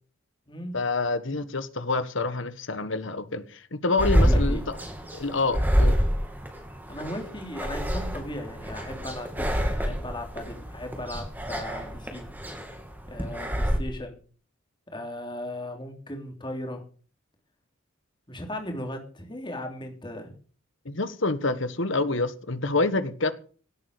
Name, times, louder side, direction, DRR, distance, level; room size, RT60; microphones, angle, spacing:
voice 1, 0.7-4.8 5.1-6.0 20.8-23.3, left 3 dB, 60° left, 1.5 m, -27 dB
sound 1, 4.0-13.8, equal, 10° right, 2.6 m, -26 dB
voice 2, 4.2-4.6 6.9-12.3 13.1-14.2 14.9-16.8 18.3-20.4, left 1 dB, 20° left, 3.4 m, -37 dB
17.5 x 8.7 x 6.8 m
head